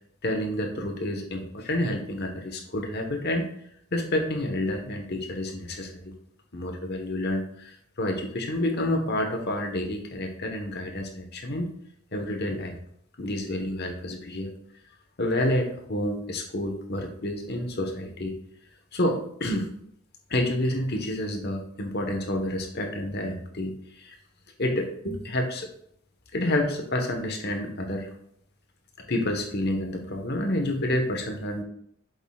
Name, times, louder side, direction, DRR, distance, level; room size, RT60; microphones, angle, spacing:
voice 1, 0.2-3.5 3.9-6.1 6.5-11.7 12.1-12.8 13.2-14.5 15.2-18.3 18.9-19.8 20.3-23.7 24.0-24.1 24.6-25.7 26.3-28.1 29.1-31.6, left 1 dB, 45° left, 3 dB, 1.1 m, -29 dB
8.0 x 7.5 x 2.3 m, 0.70 s
head